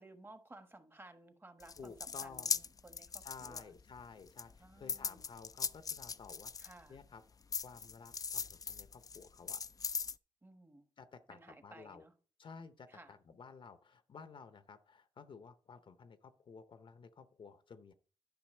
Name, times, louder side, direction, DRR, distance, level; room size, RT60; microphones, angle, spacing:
voice 1, 0.0-3.7 4.6-5.2 6.6-7.0 10.4-10.9 11.3-12.1 12.9-13.1, right 2 dB, 20° right, 1.3 m, -57 dB
sound 1, 1.6-4.0 4.4-7.0 7.5-10.1, left 5 dB, 40° left, 0.4 m, -39 dB
voice 2, 1.8-2.6 3.2-7.2 7.6-9.6 11.0-12.0 12.4-17.9, left 5 dB, 60° left, 0.8 m, -54 dB
10.5 x 5.7 x 4.3 m
cardioid pair, 70°, 10 cm